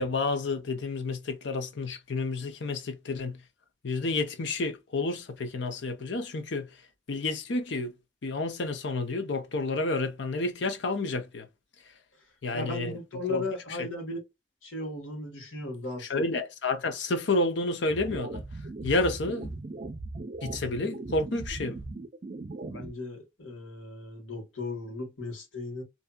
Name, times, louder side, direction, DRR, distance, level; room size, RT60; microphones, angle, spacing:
voice 1, 0.0-3.4 3.8-6.7 7.1-7.9 8.2-11.5 12.4-13.0 13.3-13.4 16.0-18.4 18.8-19.5 20.4-21.8, left 2 dB, 70° left, 0.6 m, -30 dB
voice 2, 12.5-14.2 14.6-16.2 22.7-25.8, left 2 dB, 85° left, 1.5 m, -36 dB
sound 1, 17.9-22.9, right 2 dB, 40° right, 0.4 m, -38 dB
2.7 x 2.6 x 2.2 m
head